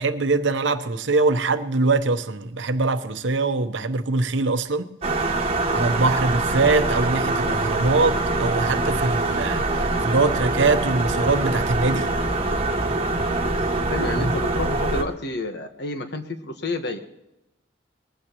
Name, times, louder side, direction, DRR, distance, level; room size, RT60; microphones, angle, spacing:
voice 1, 0.0-4.9 5.7-12.1 14.2-14.3, right 3 dB, 80° right, 0.9 m, -23 dB
sound 1, 5.0-15.0, right 2 dB, 35° right, 1.3 m, -24 dB
voice 2, 13.9-17.0, left 2 dB, 65° left, 1.4 m, -29 dB
20.5 x 15.0 x 3.1 m
head